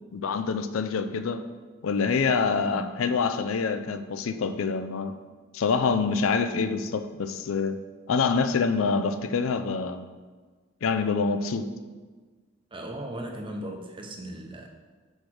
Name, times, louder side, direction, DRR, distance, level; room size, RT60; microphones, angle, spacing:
voice 1, 0.1-1.4 1.8-5.1 5.5-7.8 8.1-10.0 10.8-11.7, left 5 dB, 80° left, 10 dB, 0.4 m, -26 dB
voice 2, 12.7-14.7, right 1 dB, 25° right, 2 dB, 0.7 m, -37 dB
4.9 x 4.4 x 6.0 m, 1.4 s
head